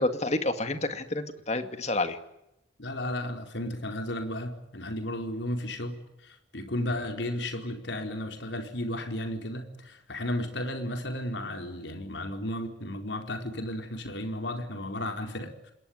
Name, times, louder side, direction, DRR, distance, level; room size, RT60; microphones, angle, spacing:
voice 1, 0.0-2.2, left 2 dB, 35° left, 2.1 m, -29 dB
voice 2, 2.8-6.0 6.2-15.5, left 1 dB, 85° left, 4.5 m, -34 dB
28.0 x 21.0 x 9.7 m
head